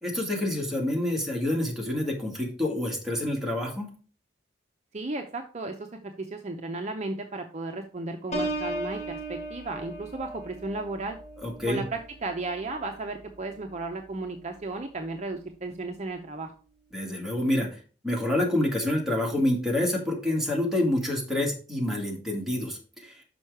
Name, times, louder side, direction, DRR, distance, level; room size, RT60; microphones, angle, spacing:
voice 1, 0.0-3.9 11.4-11.8 16.9-17.7 18.0-23.2, left 1 dB, ahead, -2 dB, 1.9 m, -27 dB
voice 2, 4.9-11.2 11.7-16.5, right 2 dB, 35° right, 5 dB, 0.6 m, -34 dB
Piano, 8.3-13.9 14.4-14.8, right 1 dB, 35° left, 2.0 m, -37 dB
6.2 x 5.4 x 4.8 m, 0.38 s
head